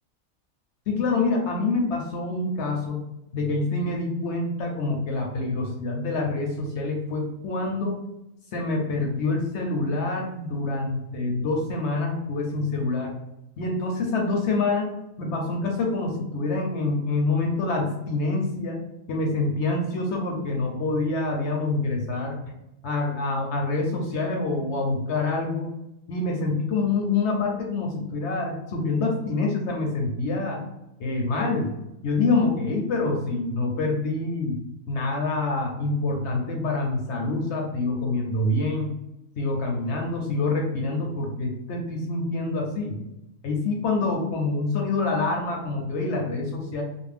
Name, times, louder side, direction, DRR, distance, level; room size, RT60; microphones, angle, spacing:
voice 1, 0.9-3.0 3.3-8.0 8.5-13.1 13.6-14.9 15.2-18.8 19.1-22.4 22.8-25.7 26.1-30.6 31.0-31.7 32.0-34.6 34.9-39.0 39.4-43.0 43.4-46.8, left 3 dB, 65° left, 0 dB, 0.7 m, -26 dB
2.5 x 2.1 x 3.3 m, 0.88 s
omnidirectional pair, 1.5 m